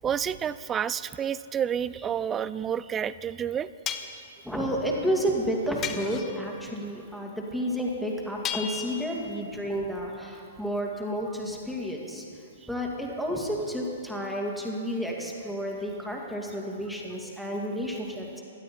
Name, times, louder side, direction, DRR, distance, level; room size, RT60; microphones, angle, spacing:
voice 1, 0.0-3.7, right 8 dB, 20° right, 17 dB, 0.3 m, -29 dB
sound 1, 2.0-2.1 3.9-4.3 5.8-6.5 8.4-9.3, left 8 dB, 25° left, 0.9 m, -35 dB
voice 2, 4.4-12.2 12.7-18.4, equal, ahead, -1 dB, 2.3 m, -31 dB
17.0 x 12.0 x 4.4 m, 2.5 s
figure-of-eight pair, 115°, 0 cm